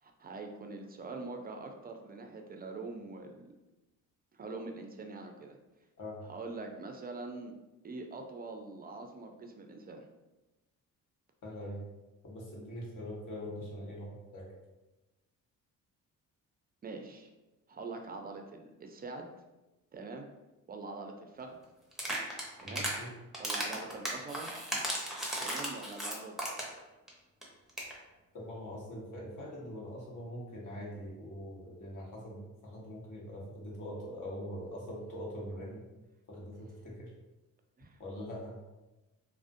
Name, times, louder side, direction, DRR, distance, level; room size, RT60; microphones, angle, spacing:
voice 1, 0.0-3.5 4.4-5.6 6.2-7.5 7.8-10.0 16.8-17.3 17.7-19.3 19.9-20.3 20.7-21.6 22.6-22.9 23.4-24.5 25.4-26.3 37.8-38.0, right 3 dB, 25° right, 4 dB, 0.4 m, -44 dB
voice 2, 11.4-11.8 12.2-14.5 22.6-23.1 28.3-35.8 36.3-37.1 38.0-38.5, equal, 55° left, -4 dB, 1.0 m, -43 dB
sound 1, 21.9-23.0 23.3-26.8 27.1-27.2 27.4-27.5 27.7-27.9, right 1 dB, ahead, 0.7 m, -35 dB
2.4 x 2.1 x 2.5 m, 1.0 s
supercardioid pair, 55°, 38 cm